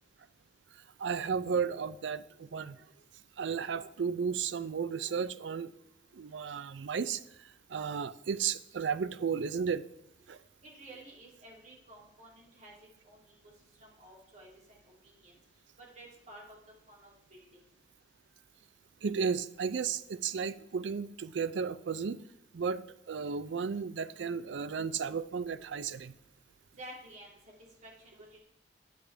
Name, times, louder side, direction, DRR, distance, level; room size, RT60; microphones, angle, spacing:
voice 1, 0.7-2.8 3.4-5.7 6.1-9.8 10.3-10.4 19.0-22.2 22.5-26.1, right 6 dB, 85° right, 0.4 m, -34 dB
voice 2, 10.6-12.7 13.0-13.2 13.8-15.3 15.8-16.6 16.9-17.5 26.8-27.3 27.8-28.4, right 1 dB, 40° right, 2.8 m, -52 dB
9.4 x 8.3 x 3.4 m
head